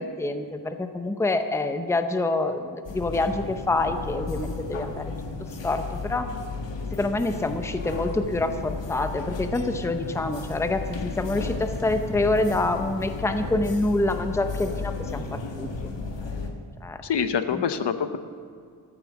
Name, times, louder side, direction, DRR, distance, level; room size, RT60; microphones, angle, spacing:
voice 1, 0.0-5.1 5.6-6.3 6.9-15.7 16.8-17.0 17.5-17.6, left 2 dB, 5° left, 7 dB, 0.6 m, -26 dB
sound 1, 2.8-16.5, left 4 dB, 90° left, 1.5 m, -34 dB
voice 2, 17.0-18.2, left 7 dB, 70° left, 10 dB, 0.8 m, -25 dB
14.0 x 8.9 x 7.1 m, 2.2 s
wide cardioid pair, 160°, 42 cm